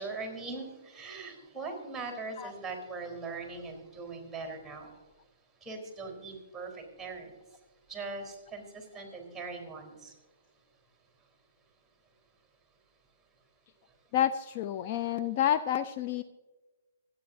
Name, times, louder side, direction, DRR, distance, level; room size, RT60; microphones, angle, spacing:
voice 1, 0.0-5.0 5.6-7.6 7.9-10.2, right 3 dB, ahead, 2 dB, 3.7 m, -41 dB
voice 2, 14.1-16.2, left 10 dB, 40° left, 10 dB, 0.4 m, -29 dB
25.5 x 9.6 x 2.7 m, 1.2 s
figure-of-eight pair, 125°, 0 cm